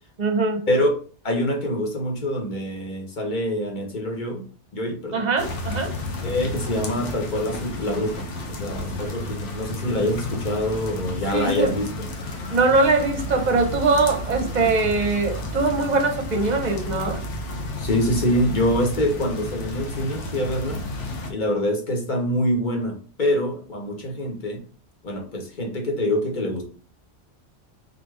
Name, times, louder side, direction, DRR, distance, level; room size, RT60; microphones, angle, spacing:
voice 1, 0.2-0.6 5.1-5.9 11.3-11.7 12.5-17.2, right 3 dB, 45° right, 4 dB, 0.8 m, -22 dB
voice 2, 1.2-4.5 4.7-5.3 6.2-12.1 17.8-20.8 21.3-24.6 25.0-26.6, left 1 dB, 45° left, 1 dB, 1.1 m, -25 dB
sound 1, 5.4-21.3, left 1 dB, 85° left, 1.1 m, -32 dB
4.0 x 2.8 x 3.3 m, 0.40 s
omnidirectional pair, 1.2 m